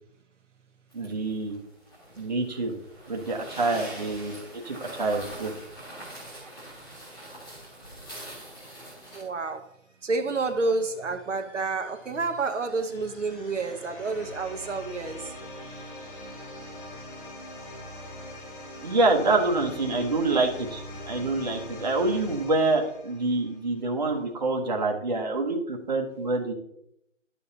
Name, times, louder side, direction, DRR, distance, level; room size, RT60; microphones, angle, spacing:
sound 1, 0.9-9.2, right 1 dB, 20° left, 2.3 m, -43 dB
voice 1, 0.9-1.6 2.2-2.8 3.1-5.5 18.8-26.5, right 2 dB, 35° right, 1.1 m, -26 dB
voice 2, 9.1-9.7 10.0-15.3, right 3 dB, 70° right, 0.9 m, -29 dB
sound 2, 9.9-23.7, left 1 dB, 45° left, 2.2 m, -43 dB
11.0 x 6.9 x 2.8 m
hypercardioid pair, 170°, 38 cm